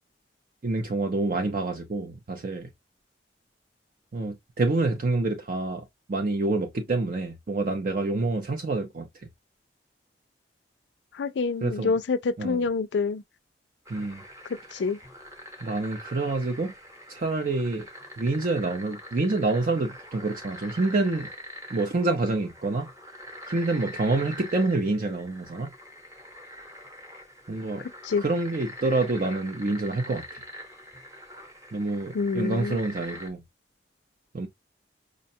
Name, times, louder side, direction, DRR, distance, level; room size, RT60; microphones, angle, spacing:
voice 1, 0.6-2.7 4.1-9.1 11.6-12.0 12.4-12.6 13.9-14.2 15.6-16.7 17.1-17.9 18.2-21.3 21.7-22.9 23.5-25.7 27.5-27.8 28.2-30.4 31.7-33.4 34.3-34.5, right 2 dB, 50° right, 0.5 m, -27 dB
voice 2, 11.1-13.2 14.5-15.0 28.0-28.2 32.1-32.8, left 4 dB, 80° left, 0.4 m, -27 dB
sound 1, 13.9-33.3, equal, 20° right, 0.8 m, -44 dB
5.0 x 2.2 x 2.7 m
head